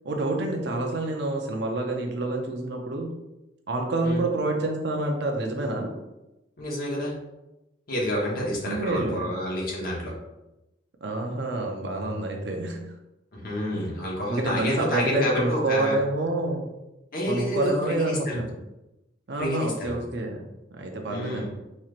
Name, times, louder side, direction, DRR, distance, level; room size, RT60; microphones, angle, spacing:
voice 1, 0.0-3.1 3.7-5.9 8.4-9.3 11.0-12.8 13.7-13.9 14.3-16.6 17.3-18.5 19.3-20.4 20.7-21.4, right 2 dB, 65° right, 2 dB, 0.6 m, -28 dB
voice 2, 6.6-7.1 7.9-10.1 13.3-16.0 17.1-18.4 19.4-19.9 21.1-21.5, left 1 dB, 50° left, -3 dB, 1.1 m, -29 dB
4.3 x 3.0 x 2.5 m, 0.96 s
head